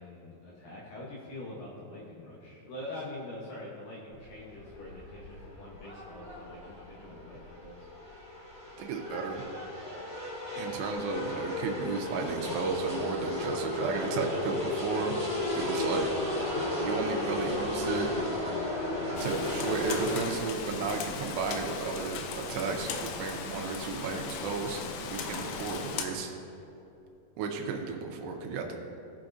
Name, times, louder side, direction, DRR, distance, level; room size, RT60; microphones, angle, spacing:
voice 1, 0.0-7.9, left 1 dB, 70° left, -5 dB, 2.3 m, -44 dB
sound 1, 4.1-20.1, left 2 dB, 35° left, 1.3 m, -34 dB
voice 2, 8.8-9.4 10.6-15.1 15.5-16.1 16.8-18.1 19.2-26.3 27.4-28.8, right 5 dB, 90° right, 2 dB, 2.8 m, -33 dB
Rain, 19.2-26.1, left 5 dB, 85° left, 2.9 m, -37 dB
17.5 x 6.0 x 2.5 m, 2.9 s
omnidirectional pair, 4.8 m